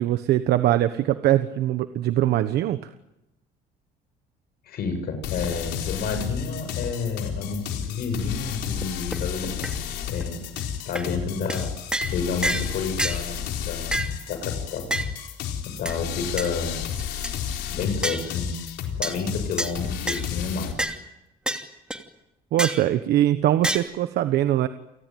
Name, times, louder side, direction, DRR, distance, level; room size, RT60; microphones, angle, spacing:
voice 1, 0.0-2.9 22.5-24.7, right 13 dB, 75° right, 10 dB, 1.2 m, -22 dB
voice 2, 4.7-9.7 10.0-10.4 10.8-11.7 12.1-13.4 13.6-14.9 15.6-16.8 17.7-18.6 19.0-20.7, left 5 dB, 65° left, 7 dB, 7.3 m, -30 dB
sound 1, 5.2-20.7, left 8 dB, 85° left, 4.2 m, -32 dB
sound 2, 8.8-8.9 9.1-9.2 9.6-9.7 10.2-10.3 10.6-10.7 11.0-11.1 11.5-11.6 11.9-12.1 12.4-12.7 13.0-13.2 13.9-14.1 14.9-15.1 15.9-16.0 16.4-16.5 17.0-17.3 18.0-18.3 19.0-19.2 19.6-19.7 20.1-20.3 20.8-21.0 21.5-21.6 21.9-22.0 22.6-22.8 23.6-23.8, right 1 dB, 5° right, 2.8 m, -27 dB
29.5 x 19.0 x 9.3 m, 0.94 s
cardioid pair, 110°, 17 cm